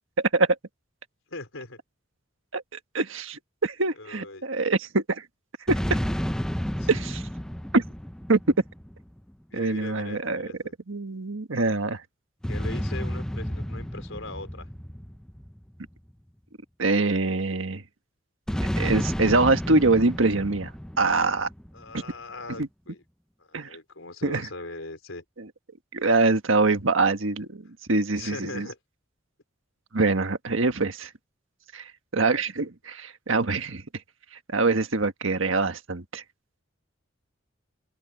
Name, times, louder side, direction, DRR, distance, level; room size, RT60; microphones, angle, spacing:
voice 1, 0.2-0.5 2.5-5.2 5.7-6.0 6.9-7.2 7.7-7.8 8.3-8.4 9.5-10.5 10.9-12.0 16.8-17.8 18.8-20.7 21.0-21.5 22.6-22.7 23.5-23.7 24.2-24.5 25.4-25.5 25.9-28.7 29.9-31.1 31.7-33.8 34.5-36.2, right 3 dB, 75° right, 1.6 m, -24 dB
voice 2, 1.3-1.8 4.0-4.5 6.8-6.9 9.5-10.7 12.5-14.7 21.7-23.0 23.5-25.2 28.2-28.8, left 2 dB, 85° left, 4.1 m, -40 dB
sound 1, 5.7-9.3 12.4-16.1 18.5-21.9, equal, 5° left, 0.5 m, -31 dB
open air
head